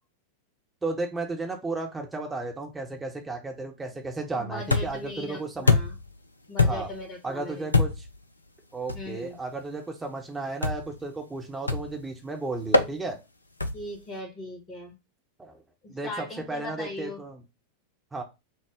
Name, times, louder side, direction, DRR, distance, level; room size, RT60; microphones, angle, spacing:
voice 1, 0.8-5.8 6.6-6.9 7.2-8.0 8.7-13.2 15.4-15.6 15.9-17.4 18.1-18.2, right 3 dB, 10° right, 2 dB, 1.1 m, -34 dB
voice 2, 4.3-6.0 6.5-7.7 8.9-9.4 13.7-14.9 15.8-17.2, left 1 dB, 35° left, 3 dB, 1.7 m, -39 dB
sound 1, 4.7-5.1 5.7-6.1 6.6-7.0 7.7-8.2 8.9-9.1 10.6-11.0 11.7-12.0 12.7-12.9 13.6-13.9, left 3 dB, 80° left, 0.4 m, -24 dB
6.1 x 2.3 x 3.7 m, 0.25 s
figure-of-eight pair, 90°, 0 cm